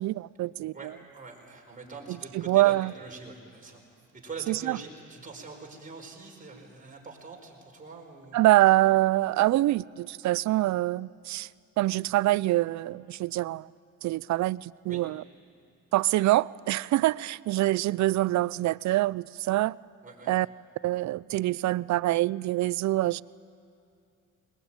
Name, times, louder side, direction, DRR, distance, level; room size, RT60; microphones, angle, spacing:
voice 1, 0.0-0.7 2.1-2.9 4.5-4.8 8.3-11.5 11.8-13.7 14.0-15.2 15.9-19.8 20.3-20.5 20.8-23.2, right 16 dB, 65° right, 22 dB, 0.4 m, -25 dB
voice 2, 0.7-3.8 4.1-8.4 14.9-15.0 20.0-20.3, right 3 dB, 25° right, 0 dB, 4.8 m, -44 dB
20.5 x 20.5 x 9.0 m, 2.6 s
cardioid pair, 90°, 30 cm